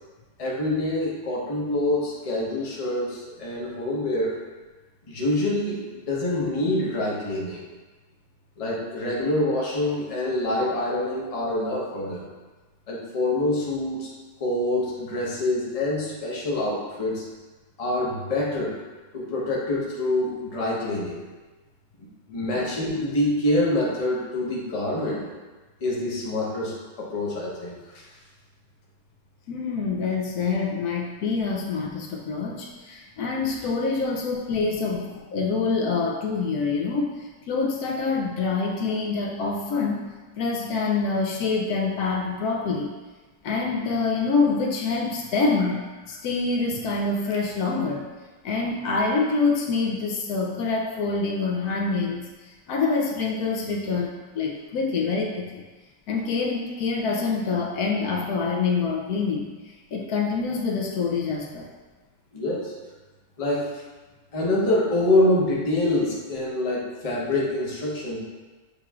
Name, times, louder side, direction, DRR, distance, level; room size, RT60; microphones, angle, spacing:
voice 1, 0.4-4.4 5.1-7.6 8.6-12.3 12.9-14.1 14.4-17.2 17.8-18.8 19.1-21.2 22.3-25.3 25.8-28.1 62.3-62.7 63.4-63.7 64.3-68.2, left 1 dB, 30° left, -5 dB, 0.7 m, -26 dB
voice 2, 29.5-40.1 40.4-42.9 43.4-48.1 48.4-55.6 56.1-59.5 59.9-61.7, left 4 dB, 75° left, 0 dB, 1.0 m, -26 dB
6.9 x 3.0 x 2.4 m, 1.2 s
omnidirectional pair, 1.7 m